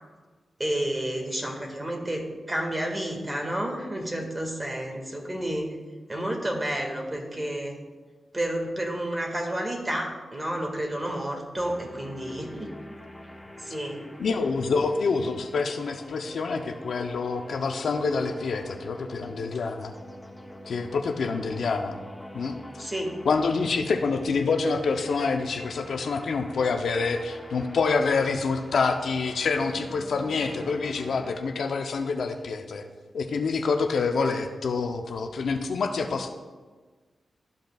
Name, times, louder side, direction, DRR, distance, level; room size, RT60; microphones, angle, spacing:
voice 1, 0.6-5.7 6.1-7.7 8.3-12.7 13.6-14.0 22.8-23.2, right 1 dB, 25° right, 1 dB, 1.7 m, -30 dB
sound 1, 11.6-31.4, left 1 dB, 15° left, 0.9 m, -45 dB
voice 2, 14.2-19.9 20.7-22.0 22.3-22.9 23.2-32.8 33.1-36.3, left 4 dB, 80° left, 5 dB, 0.6 m, -27 dB
13.0 x 5.3 x 2.3 m, 1.4 s
cardioid pair, 55°, 0 cm